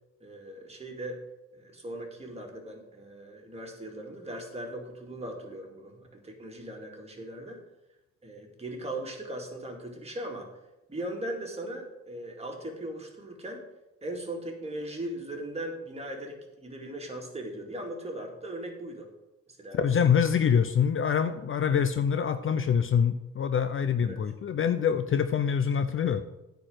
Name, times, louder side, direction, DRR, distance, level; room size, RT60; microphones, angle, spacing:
voice 1, 0.2-1.2 1.5-7.6 8.2-10.5 10.9-13.6 14.0-19.1 19.5-19.8 21.7-21.8 24.0-24.2, right 1 dB, 20° right, 1 dB, 2.3 m, -39 dB
voice 2, 19.7-26.2, left 7 dB, 45° left, 11 dB, 0.6 m, -25 dB
9.6 x 4.6 x 7.8 m, 0.95 s
cardioid pair, 90°, 30 cm